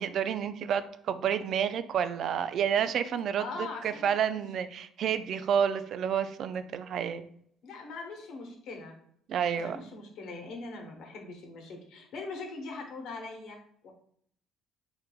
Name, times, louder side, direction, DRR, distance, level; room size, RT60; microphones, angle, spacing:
voice 1, 0.0-3.5 3.8-7.2 9.3-9.9, right 8 dB, 60° right, 11 dB, 0.3 m, -29 dB
voice 2, 3.4-4.4 7.6-9.0 9.6-13.9, left 3 dB, 70° left, 2 dB, 1.0 m, -42 dB
4.2 x 3.7 x 2.3 m, 0.66 s
supercardioid pair, 70°, 0 cm